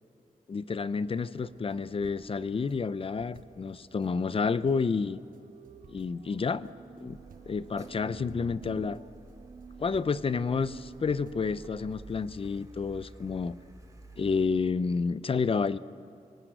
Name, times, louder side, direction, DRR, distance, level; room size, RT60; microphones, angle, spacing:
voice 1, 0.5-5.2 5.9-6.7 7.0-7.2 7.5-9.0 9.8-13.6 14.2-15.8, left 5 dB, 40° left, 15 dB, 0.6 m, -30 dB
sound 1, 1.4-11.9, right 6 dB, 65° right, 1.2 m, -52 dB
Car, 7.1-14.3, right 2 dB, 25° right, 2.0 m, -51 dB
25.5 x 19.0 x 7.9 m, 2.7 s
wide cardioid pair, 150°, 15 cm